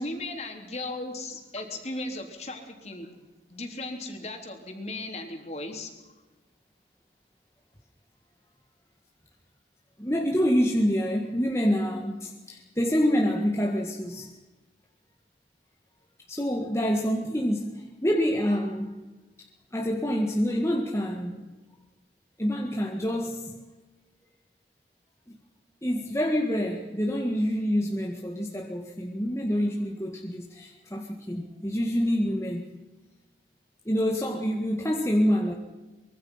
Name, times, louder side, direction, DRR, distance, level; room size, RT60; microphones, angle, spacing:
voice 1, 0.0-3.1 3.5-5.9, left 2 dB, 35° left, 3 dB, 3.8 m, -36 dB
voice 2, 10.0-14.3 16.3-18.9 19.4-21.5 22.4-23.6 25.3-25.4 25.8-32.7 33.9-35.5, equal, 15° left, 0 dB, 1.9 m, -27 dB
25.0 x 23.5 x 5.9 m, 1.2 s
head